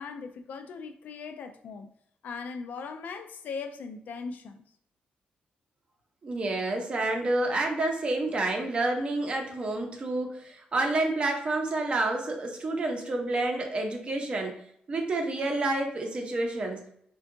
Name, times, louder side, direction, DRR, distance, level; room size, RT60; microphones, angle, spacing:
voice 1, 0.0-1.9 2.2-4.6, left 5 dB, 65° left, 0.3 m, -39 dB
voice 2, 6.2-14.6 14.9-16.8, right 2 dB, 35° right, 0.6 m, -29 dB
3.6 x 2.2 x 2.5 m
cardioid pair, 130°, 3 cm